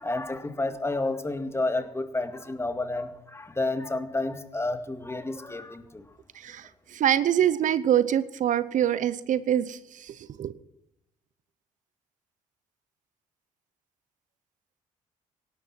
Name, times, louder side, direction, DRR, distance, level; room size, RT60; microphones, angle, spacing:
voice 1, 0.0-6.0, left 2 dB, 15° left, 8 dB, 2.2 m, -30 dB
voice 2, 6.3-10.5, right 10 dB, 60° right, 16 dB, 0.8 m, -25 dB
17.5 x 12.0 x 5.9 m, 0.83 s
supercardioid pair, 60°, 15 cm